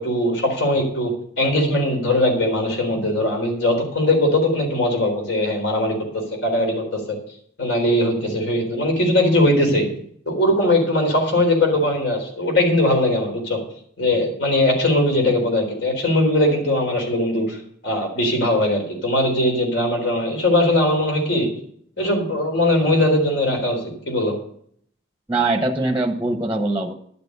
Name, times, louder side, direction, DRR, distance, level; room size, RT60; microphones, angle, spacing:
voice 1, 0.0-6.0 6.4-7.2 7.6-9.9 10.3-13.6 14.0-17.6 17.8-21.5 22.0-23.8 24.1-24.3, left 1 dB, 70° left, 2 dB, 4.0 m, -20 dB
voice 2, 25.3-26.9, right 2 dB, 10° right, 5 dB, 0.8 m, -22 dB
11.5 x 6.8 x 6.7 m, 0.65 s
head